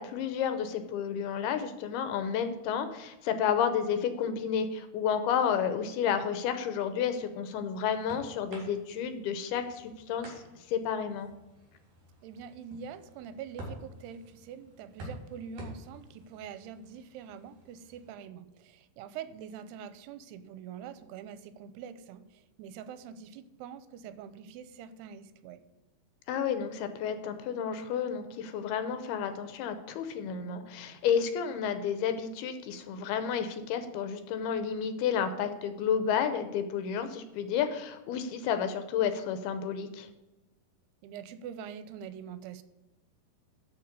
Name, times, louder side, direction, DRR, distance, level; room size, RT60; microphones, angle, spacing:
voice 1, 0.0-10.3 10.7-11.3 26.3-40.1, left 7 dB, 80° left, 9 dB, 2.7 m, -31 dB
sound 1, 7.0-18.1, right 1 dB, 55° right, 5.0 m, -50 dB
voice 2, 12.2-25.6 41.0-42.6, right 7 dB, 85° right, 12 dB, 2.8 m, -44 dB
12.0 x 4.9 x 6.6 m, 1.0 s
omnidirectional pair, 4.6 m